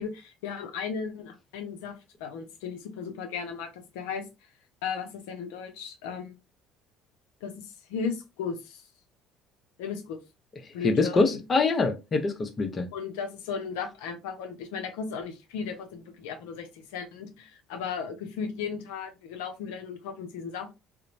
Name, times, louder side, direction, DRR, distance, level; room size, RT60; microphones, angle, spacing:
voice 1, 0.0-4.2 4.8-6.4 7.4-8.9 9.8-10.2 10.7-11.4 12.9-20.7, left 6 dB, 80° left, 0.5 m, -36 dB
voice 2, 10.8-12.9, left 3 dB, 35° left, 0.7 m, -24 dB
2.9 x 2.1 x 2.5 m
hypercardioid pair, 70°, 0 cm